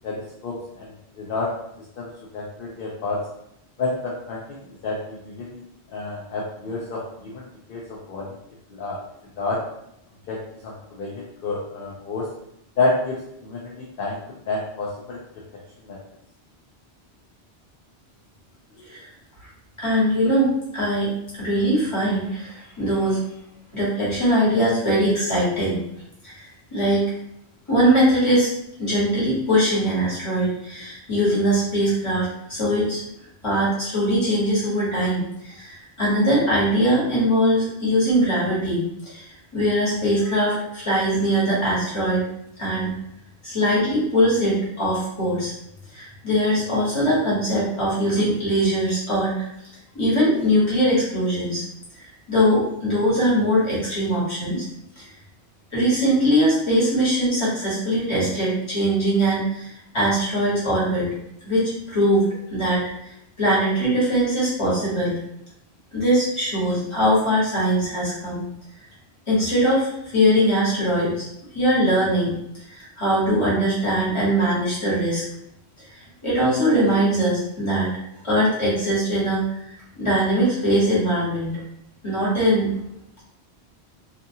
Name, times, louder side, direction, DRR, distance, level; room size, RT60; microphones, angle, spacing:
voice 1, 0.0-1.5 2.0-2.1 2.3-3.2 3.8-4.6 4.8-5.6 5.9-8.3 8.7-9.0 9.4-9.6 10.3-12.3 12.8-14.2 14.5-15.2 15.8-16.0, left 3 dB, 60° left, -4 dB, 0.7 m, -29 dB
voice 2, 19.8-21.1 21.4-23.2 23.7-25.8 26.2-26.4 26.7-27.0 27.7-28.5 28.8-33.0 33.4-39.3 39.5-42.2 42.6-42.9 43.4-45.5 45.9-49.5 49.9-51.6 51.9-54.6 55.0-55.1 55.7-59.7 59.9-61.1 61.4-62.3 62.5-62.9 63.4-65.1 65.9-68.5 69.3-71.2 71.5-72.4 72.7-75.2 76.2-77.9 78.2-79.4 80.0-81.6 82.0-82.7, equal, 30° left, -9 dB, 1.3 m, -21 dB
2.6 x 2.4 x 2.7 m, 0.78 s
omnidirectional pair, 1.1 m